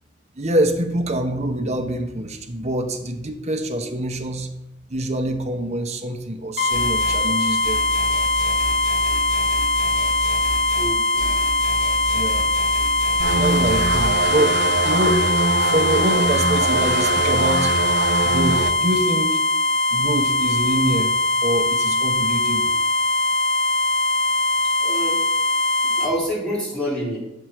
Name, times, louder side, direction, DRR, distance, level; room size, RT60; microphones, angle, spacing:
voice 1, 0.4-4.5 4.9-7.8 12.1-12.5 13.3-15.3 15.6-17.7 18.2-19.4 19.9-21.1 21.4-22.8, right 1 dB, 40° right, 6 dB, 0.8 m, -25 dB
sound 1, 6.6-26.1, left 2 dB, 60° left, 1.9 m, -21 dB
sound 2, 6.7-7.2 7.6-10.9 11.2-14.1, equal, 40° left, 2.4 m, -31 dB
voice 2, 10.8-11.3 24.8-25.2 25.8-27.2, equal, 5° left, -8 dB, 3.3 m, -27 dB
sound 3, 13.2-18.7, right 3 dB, 65° right, 0.6 m, -23 dB
8.0 x 4.6 x 6.0 m, 0.87 s
head